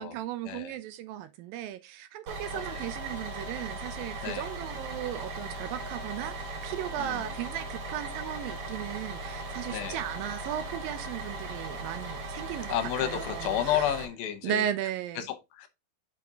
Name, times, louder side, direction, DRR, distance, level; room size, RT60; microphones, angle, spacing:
voice 1, 0.0-12.8 13.0-13.9 14.4-15.2, right 11 dB, 80° right, 2.2 m, -36 dB
Bus, 2.3-14.0, right 2 dB, 45° right, 3.0 m, -38 dB
voice 2, 7.0-7.3 9.7-10.0 12.7-14.7 15.2-15.7, left 11 dB, 75° left, 2.8 m, -31 dB
6.1 x 6.0 x 3.8 m
omnidirectional pair, 4.5 m